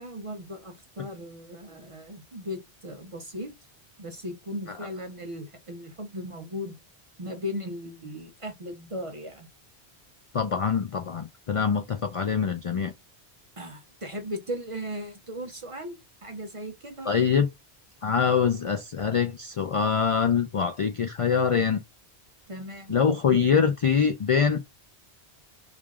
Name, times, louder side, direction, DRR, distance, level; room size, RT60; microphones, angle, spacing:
voice 1, 0.0-3.6 4.0-6.8 7.2-9.5 13.6-17.3 22.5-22.9, equal, 40° right, 0.5 m, -37 dB
voice 2, 10.3-12.9 17.1-17.5 18.0-21.8 22.9-24.6, left 6 dB, 60° left, 0.3 m, -24 dB
3.3 x 2.4 x 3.5 m
omnidirectional pair, 1.1 m